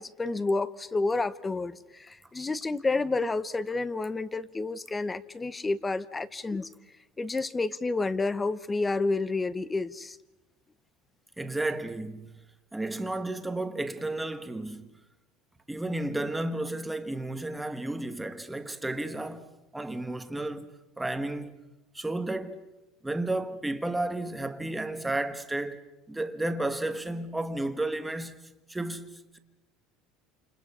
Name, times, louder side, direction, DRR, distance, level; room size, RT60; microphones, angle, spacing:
voice 1, 0.0-6.7 7.2-10.2, left 3 dB, 10° left, 0.8 m, -30 dB
voice 2, 11.4-12.3 12.7-14.9 15.7-19.5 19.7-20.7 21.0-21.6 21.9-22.6 23.0-28.4 28.7-29.4, right 2 dB, 5° right, 1.4 m, -32 dB
29.5 x 28.5 x 5.6 m
cardioid pair, 155°, 0 cm